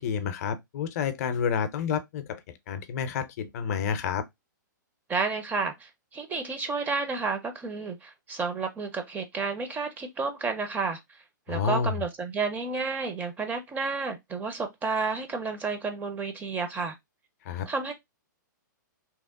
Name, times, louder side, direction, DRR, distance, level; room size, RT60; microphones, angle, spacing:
voice 1, 0.0-4.2 11.5-11.9 17.5-17.7, left 7 dB, 50° left, 0.5 m, -29 dB
voice 2, 5.1-11.0 11.5-16.9 17.7-17.9, right 4 dB, 15° right, 0.5 m, -31 dB
2.8 x 2.0 x 3.5 m
hypercardioid pair, 120°, 11 cm